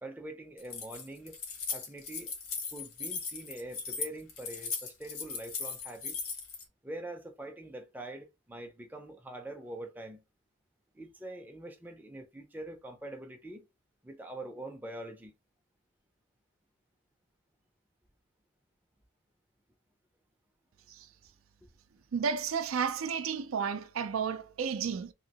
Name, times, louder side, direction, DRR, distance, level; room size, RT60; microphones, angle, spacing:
voice 1, 0.0-1.4 1.7-2.3 2.7-6.2 6.8-10.2 10.9-13.7 14.0-15.3, right 1 dB, 10° right, 0.4 m, -44 dB
Keys jangling, 0.6-6.6, left 5 dB, 80° left, 1.1 m, -38 dB
voice 2, 22.1-25.1, right 6 dB, 85° right, 0.4 m, -32 dB
3.1 x 2.8 x 2.8 m
head